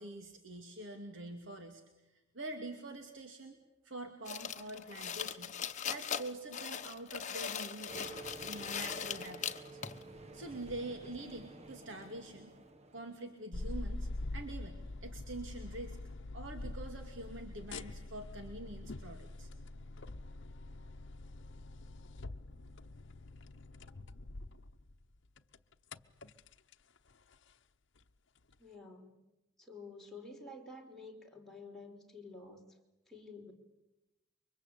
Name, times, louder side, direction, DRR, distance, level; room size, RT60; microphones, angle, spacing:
voice 1, 0.0-1.8 2.1-3.6 3.8-5.5 5.9-8.1 8.4-9.8 10.3-12.5 12.9-16.0 16.3-19.5, right 2 dB, 65° right, 5 dB, 2.5 m, -45 dB
sound 1, 4.3-10.0, left 8 dB, 40° left, 1.2 m, -40 dB
sound 2, 7.9-13.5, right 2 dB, 35° right, 1.3 m, -51 dB
sound 3, 13.5-25.0 25.4-26.7 27.1-27.4 28.0-28.1 28.5-28.6, left 2 dB, 65° left, 0.9 m, -45 dB
voice 2, 28.6-29.2 29.6-32.7 33.1-33.5, left 3 dB, ahead, -1 dB, 4.9 m, -50 dB
28.5 x 24.0 x 8.6 m, 0.98 s
head